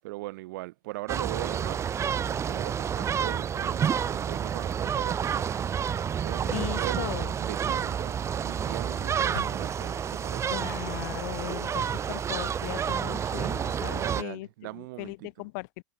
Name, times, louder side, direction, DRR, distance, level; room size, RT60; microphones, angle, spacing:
voice 1, 0.0-5.7 5.9-8.2 8.4-10.5 14.0-15.5, right 20 dB, 65° right, 1.1 m, -40 dB
sound 1, 1.1-14.2, right 8 dB, 25° right, 0.7 m, -29 dB
sound 2, 5.5-6.3 6.8-7.5 8.4-8.9 9.2-10.2, left 8 dB, 80° left, 2.1 m, -47 dB
voice 2, 6.5-7.3 10.5-14.5 14.7-15.8, left 27 dB, 60° left, 0.7 m, -38 dB
sound 3, 8.2-14.1, left 13 dB, 40° left, 7.7 m, -52 dB
hypercardioid pair, 85°, 11 cm